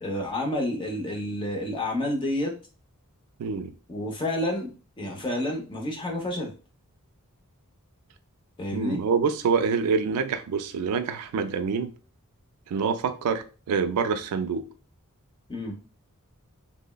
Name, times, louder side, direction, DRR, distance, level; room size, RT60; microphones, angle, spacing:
voice 1, 0.0-2.5 3.9-4.7 5.0-6.5 8.6-9.0 15.5-15.7, left 1 dB, 20° left, 0.7 m, -29 dB
voice 2, 3.4-3.7 8.7-11.9 12.7-14.7, right 5 dB, 80° right, 0.3 m, -26 dB
3.3 x 2.0 x 2.2 m
head